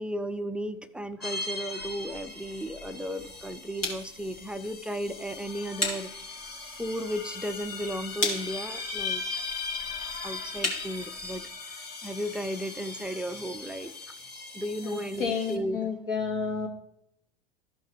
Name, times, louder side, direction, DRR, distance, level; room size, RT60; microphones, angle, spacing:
voice 1, 0.0-6.1 6.8-9.2 10.2-11.4 12.0-14.2 14.5-15.9, equal, 5° right, 11 dB, 0.3 m, -34 dB
sound 1, 1.2-15.6, left 4 dB, 35° left, 1.8 m, -39 dB
sound 2, 1.8-11.5, left 2 dB, 90° left, 2.3 m, -38 dB
voice 2, 14.8-16.7, left 5 dB, 70° left, 1 dB, 2.1 m, -31 dB
13.5 x 5.6 x 3.0 m, 0.76 s
hypercardioid pair, 85°, 29 cm